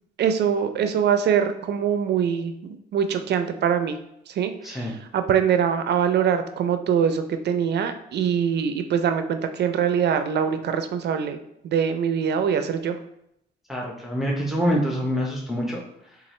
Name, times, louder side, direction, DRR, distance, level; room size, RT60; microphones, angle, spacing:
voice 1, 0.2-2.5 2.9-4.0 4.3-11.4 11.6-13.0, right 8 dB, 60° right, 8 dB, 0.4 m, -23 dB
voice 2, 4.6-4.9 13.7-16.2, equal, ahead, -3 dB, 0.7 m, -26 dB
4.1 x 2.4 x 3.0 m, 0.79 s
cardioid pair, 90°, 20 cm